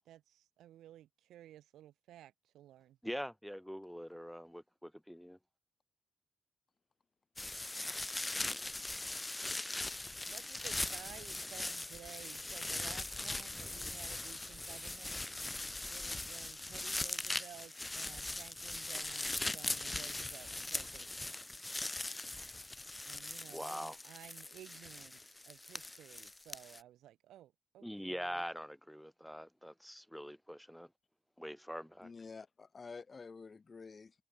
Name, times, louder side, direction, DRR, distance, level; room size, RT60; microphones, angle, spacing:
voice 1, 0.0-3.0 10.3-15.2 15.9-21.1 23.0-28.5, right 12 dB, 75° right, 1.6 m, -55 dB
voice 2, 3.0-5.4 23.5-24.0 27.8-30.9 31.4-32.1, equal, ahead, 4.3 m, -43 dB
sound 1, 7.4-26.8, left 2 dB, 20° left, 1.4 m, -40 dB
voice 3, 32.0-34.1, left 4 dB, 40° left, 4.3 m, -49 dB
supercardioid pair, 55°, 0 cm